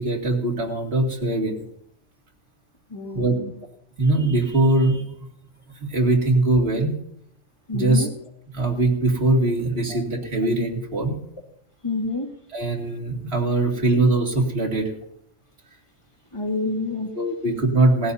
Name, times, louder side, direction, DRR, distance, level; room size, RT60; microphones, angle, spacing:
voice 1, 0.0-1.5 3.1-3.3 4.0-5.0 5.9-7.0 7.7-8.1 8.5-11.2 12.5-14.9 17.1-18.1, right 2 dB, 60° right, 0 dB, 2.7 m, -21 dB
voice 2, 2.9-3.5 7.7-8.1 9.9-10.0 11.8-12.3 16.3-17.1, left 2 dB, 25° left, 2 dB, 1.9 m, -28 dB
19.5 x 15.0 x 2.8 m, 0.72 s
omnidirectional pair, 1.2 m